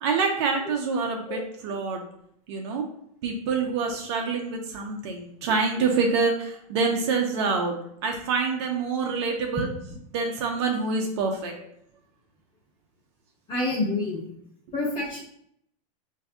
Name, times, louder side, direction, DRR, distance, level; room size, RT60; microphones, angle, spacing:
voice 1, 0.0-2.0 2.5-2.8 3.2-7.7 8.0-9.7 10.1-11.5, right 4 dB, 45° right, 1 dB, 0.6 m, -26 dB
voice 2, 13.5-14.2 14.7-15.2, left 2 dB, 25° left, -4 dB, 1.3 m, -27 dB
4.6 x 2.6 x 2.3 m, 0.70 s
supercardioid pair, 155°, 20 cm